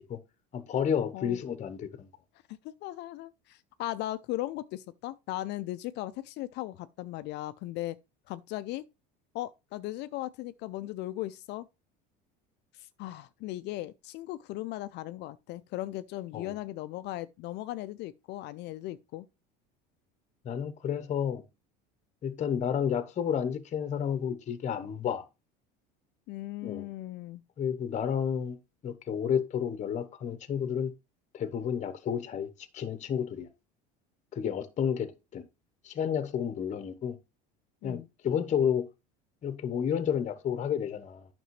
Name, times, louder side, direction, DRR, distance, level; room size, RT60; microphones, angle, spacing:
voice 1, 0.5-2.1 16.3-16.5 20.4-21.4 22.2-25.2 26.6-26.9 27.6-28.6 28.8-30.9 31.3-32.5 32.7-33.5 34.3-35.4 35.8-37.2 37.8-38.9 39.4-41.3, left 8 dB, 35° left, 0.9 m, -31 dB
voice 2, 2.6-8.0 8.3-8.8 9.3-11.7 12.7-19.3 26.3-27.4 37.8-38.1, left 16 dB, 55° left, 0.4 m, -37 dB
9.2 x 6.0 x 3.1 m
supercardioid pair, 105°, 21 cm